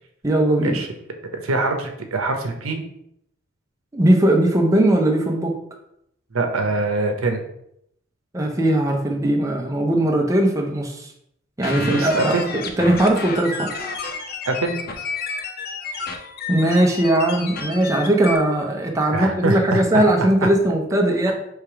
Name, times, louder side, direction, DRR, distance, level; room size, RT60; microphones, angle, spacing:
voice 1, 0.2-0.8 3.9-5.6 8.3-11.1 11.6-13.7 16.5-21.3, right 1 dB, 15° right, 0 dB, 0.5 m, -19 dB
voice 2, 1.3-2.8 6.3-7.4 11.8-12.4 14.5-14.8 19.1-20.0 20.4-20.5, right 3 dB, 85° right, 5 dB, 0.7 m, -23 dB
sound 1, 11.6-18.4, left 4 dB, 45° left, 0.6 m, -31 dB
3.3 x 3.3 x 4.6 m, 0.76 s
head